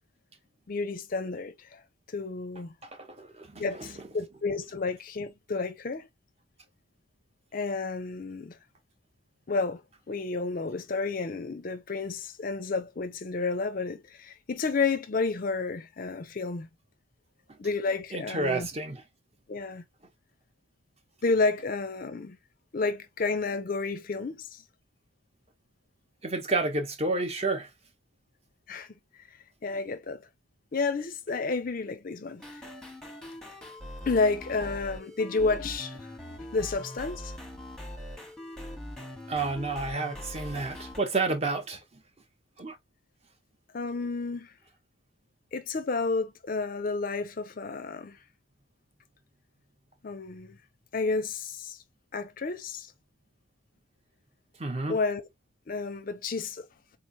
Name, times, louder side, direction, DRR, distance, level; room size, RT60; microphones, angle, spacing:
voice 1, 0.7-1.8 2.1-2.7 3.6-6.1 7.5-8.6 9.5-9.8 10.1-16.7 17.6-18.7 19.5-19.8 21.2-22.4 22.7-24.6 28.7-28.9 29.6-30.2 30.7-32.6 34.1-36.1 36.5-37.3 43.7-44.5 45.5-48.2 50.0-50.6 50.9-51.8 52.1-52.9 54.9-55.2 55.7-56.7, left 4 dB, 40° left, 0.5 m, -31 dB
voice 2, 3.0-4.0 18.1-19.0 26.2-27.7 39.3-41.8 42.6-42.7 54.6-55.0, right 3 dB, 30° right, 0.8 m, -30 dB
sound 1, 32.4-41.0, left 1 dB, 5° left, 0.9 m, -42 dB
3.9 x 3.1 x 2.6 m
head